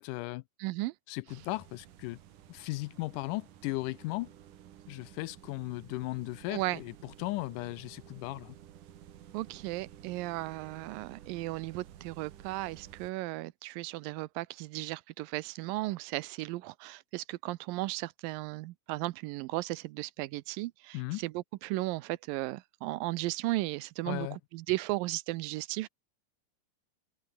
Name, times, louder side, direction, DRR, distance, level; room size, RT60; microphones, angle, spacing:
voice 1, 0.0-0.4 1.1-2.2 2.5-4.3 4.9-8.6 20.9-21.2 24.1-24.4, left 20 dB, 80° left, 2.0 m, -36 dB
voice 2, 0.6-0.9 6.5-6.8 9.3-25.9, right 19 dB, 90° right, 2.4 m, -35 dB
sound 1, 1.3-13.1, right 11 dB, 70° right, 3.1 m, -53 dB
omnidirectional pair, 3.9 m